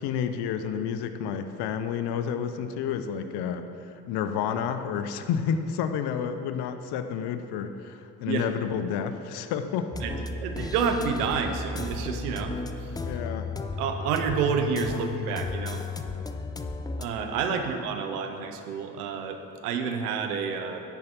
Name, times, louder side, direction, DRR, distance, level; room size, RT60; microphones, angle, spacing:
voice 1, 0.0-9.9 13.0-13.5 17.5-17.6, left 7 dB, 60° left, 9 dB, 0.6 m, -30 dB
sound 1, 9.9-17.1, left 3 dB, 10° left, 0.3 m, -34 dB
voice 2, 10.0-13.0 13.8-15.8 17.0-20.8, right 6 dB, 85° right, 6 dB, 0.7 m, -29 dB
9.6 x 4.6 x 5.4 m, 2.9 s
hypercardioid pair, 50°, 45 cm